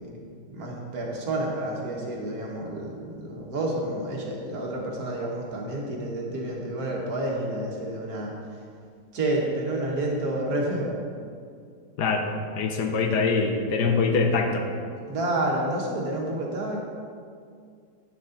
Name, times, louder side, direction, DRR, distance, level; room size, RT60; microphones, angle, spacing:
voice 1, 0.0-8.3 9.1-11.0 15.1-16.9, right 1 dB, 65° right, -1 dB, 1.7 m, -29 dB
voice 2, 12.6-14.7, left 4 dB, 85° left, 4 dB, 1.4 m, -23 dB
9.3 x 6.7 x 3.8 m, 2.2 s
omnidirectional pair, 1.8 m